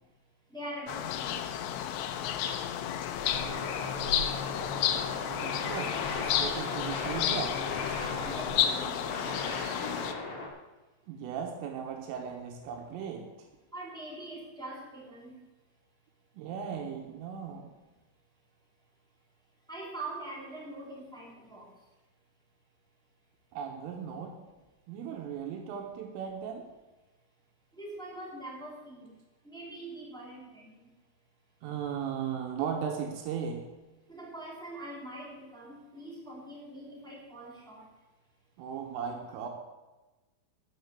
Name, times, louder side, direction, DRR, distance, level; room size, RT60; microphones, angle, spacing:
voice 1, 0.5-1.4 8.0-9.3 13.7-15.3 19.7-21.7 27.7-29.1 29.4-30.9 34.1-37.9, right 1 dB, ahead, -4 dB, 1.5 m, -43 dB
sound 1, 0.9-10.1, left 10 dB, 80° left, 2.6 m, -32 dB
sound 2, 3.1-8.5, left 2 dB, 65° left, 2.8 m, -44 dB
sound 3, 3.2-10.5, left 2 dB, 45° left, 2.9 m, -38 dB
voice 2, 5.4-7.6 11.1-13.2 16.4-17.7 23.5-24.4 24.9-26.6 31.6-33.6 38.6-39.5, right 7 dB, 85° right, 2 dB, 3.8 m, -37 dB
12.5 x 7.9 x 6.7 m, 1.1 s
omnidirectional pair, 5.7 m